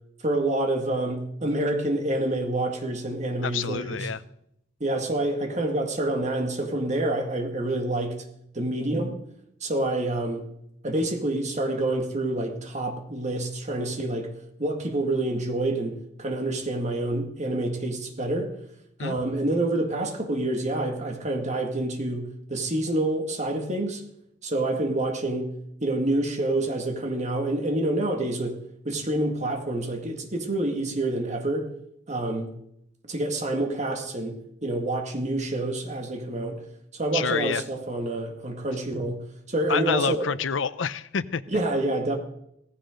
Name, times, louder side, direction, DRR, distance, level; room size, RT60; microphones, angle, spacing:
voice 1, 0.2-4.1 4.8-8.2 8.5-9.2 9.6-10.5 10.8-14.3 14.6-18.5 19.0-24.0 24.4-25.5 25.8-31.7 32.1-32.5 33.1-36.6 36.9-40.3 41.5-42.2, right 1 dB, 40° right, 4 dB, 2.0 m, -27 dB
voice 2, 3.4-4.2 19.0-19.2 37.1-37.6 39.7-41.4, left 6 dB, 85° left, 16 dB, 0.6 m, -28 dB
17.0 x 15.0 x 3.8 m, 0.75 s
head